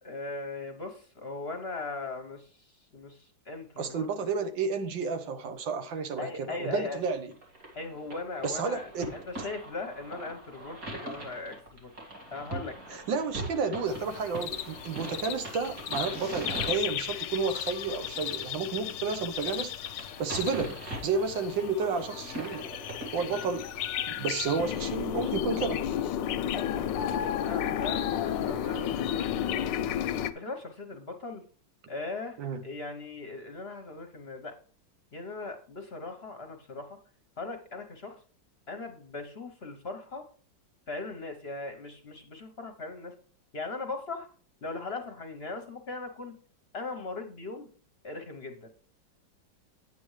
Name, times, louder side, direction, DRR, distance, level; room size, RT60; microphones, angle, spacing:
voice 1, 0.0-4.3 6.2-7.0 7.8-13.0 15.0-15.1 23.2-23.3 26.4-26.9 27.5-29.7 30.3-31.4 31.9-34.5 35.1-37.0 37.4-38.2 38.7-40.2 40.9-43.1 43.5-44.3 44.6-46.4 46.7-47.7 48.0-48.7, left 3 dB, 45° left, 6 dB, 0.9 m, -39 dB
voice 2, 3.8-7.3 8.4-9.2 12.9-19.7 20.0-22.7 23.1-23.7 24.1-25.8 32.4-32.6, right 4 dB, 90° right, 8 dB, 1.8 m, -31 dB
sound 1, 7.3-24.0, right 1 dB, 50° right, 2.6 m, -42 dB
sound 2, 13.9-30.3, left 10 dB, 85° left, 1.3 m, -33 dB
9.0 x 8.4 x 3.2 m, 0.42 s
omnidirectional pair, 2.0 m